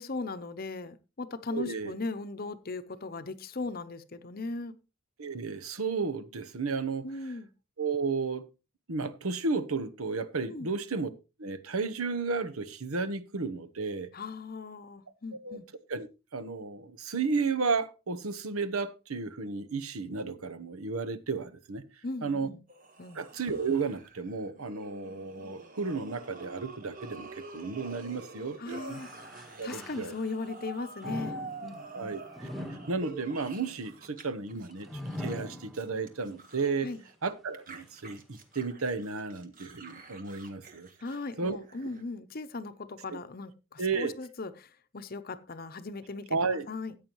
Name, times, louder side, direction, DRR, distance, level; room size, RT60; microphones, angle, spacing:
voice 1, 0.0-4.8 7.0-7.5 10.5-10.7 14.1-15.7 22.0-22.6 23.0-23.2 28.6-29.1 29.6-32.1 36.8-37.0 41.0-47.0, left 3 dB, 45° left, 0.7 m, -38 dB
voice 2, 1.5-1.9 5.2-7.1 7.8-8.5 8.9-11.1 11.4-14.1 15.4-15.6 15.9-16.1 16.3-21.8 22.2-22.5 23.1-29.0 29.6-30.1 31.9-32.5 32.9-34.9 35.2-36.9 37.2-40.9 41.4-41.6 43.8-44.1 46.3-46.7, right 4 dB, 85° right, 1.0 m, -33 dB
sound 1, 22.7-34.2 34.5-37.1 37.5-42.0, right 3 dB, 40° right, 1.6 m, -47 dB
sound 2, 28.9-30.5 31.0-36.3 36.7-36.8 37.7-37.8, left 1 dB, ahead, 1.2 m, -42 dB
14.5 x 8.8 x 3.0 m
head